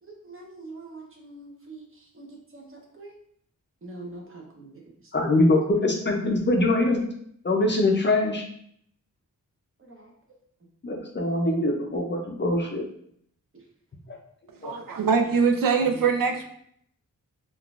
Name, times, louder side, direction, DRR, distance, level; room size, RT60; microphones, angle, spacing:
voice 1, 0.0-3.1 3.8-4.8 5.3-5.5 9.8-10.1 15.3-15.4 15.8-16.0, right 2 dB, 40° right, 0 dB, 0.8 m, -44 dB
voice 2, 5.1-7.0 7.4-8.4 10.8-12.9 14.1-14.2 14.6-14.8, left 2 dB, 35° left, 1 dB, 0.5 m, -23 dB
voice 3, 14.6-16.4, right 5 dB, 80° right, 4 dB, 0.5 m, -23 dB
3.7 x 2.4 x 2.4 m, 0.68 s
wide cardioid pair, 95°, 33 cm